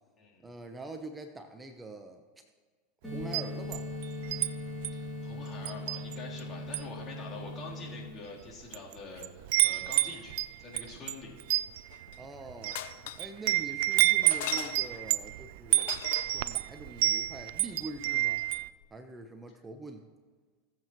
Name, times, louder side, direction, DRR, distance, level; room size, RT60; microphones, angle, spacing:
voice 1, 0.4-2.4 3.1-3.9 12.2-12.8 13.2-16.0 16.3-18.4 18.9-20.0, right 2 dB, 15° right, 6 dB, 0.8 m, -44 dB
sound 1, 3.0-8.0, left 1 dB, 10° left, 3.1 m, -39 dB
Wind chime, 3.2-4.5 4.8-5.1 5.7-6.4 6.7-7.0 7.7-7.8 8.5-8.9 9.2-18.7, right 17 dB, 70° right, 0.4 m, -29 dB
voice 2, 4.9-11.3, left 3 dB, 35° left, -4 dB, 3.4 m, -45 dB
sound 2, 11.9-12.3 12.7-13.4 14.2-15.1 15.8-16.4 18.6-18.7 18.8-18.9, left 13 dB, 70° left, 0.6 m, -40 dB
20.0 x 7.8 x 3.1 m, 1.5 s
hypercardioid pair, 105°, 0 cm